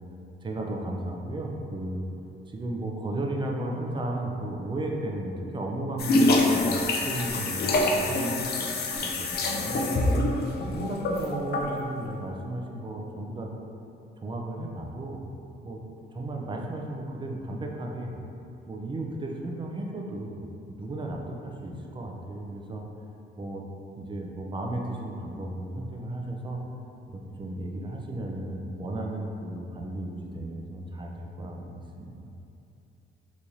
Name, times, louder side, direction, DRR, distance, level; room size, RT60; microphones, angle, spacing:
voice 1, 0.4-2.0 2.5-10.2 10.6-13.5 14.2-15.2 15.6-15.8 16.1-18.1 18.7-20.4 20.7-22.8 23.4-23.7 24.0-26.6 27.1-32.1, right 1 dB, 25° right, 0 dB, 0.4 m, -34 dB
sound 1, 6.0-11.8, left 2 dB, 55° left, 0.5 m, -25 dB
3.5 x 3.0 x 2.7 m, 2.7 s
cardioid pair, 90°, 20 cm